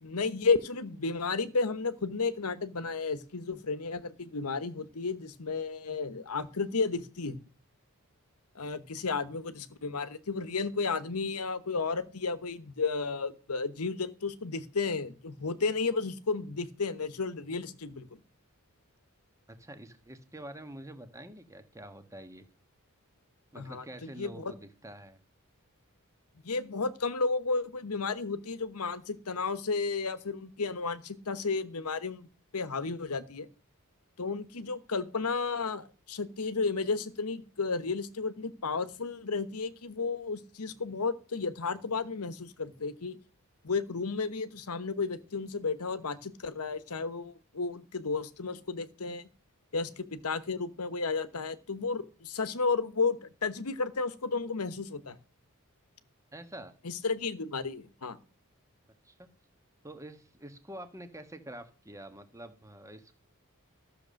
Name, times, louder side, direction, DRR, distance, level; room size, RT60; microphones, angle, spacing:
voice 1, 0.0-7.4 8.5-18.1 23.5-24.5 26.4-32.3 32.5-33.5 34.2-43.2 43.6-49.3 49.7-55.2 56.8-58.2, left 4 dB, 85° left, 13 dB, 1.1 m, -33 dB
voice 2, 19.5-22.4 23.5-25.2 56.3-56.7 59.0-59.3 59.8-63.2, right 1 dB, 15° right, 9 dB, 1.3 m, -46 dB
13.5 x 6.9 x 6.4 m, 0.37 s
head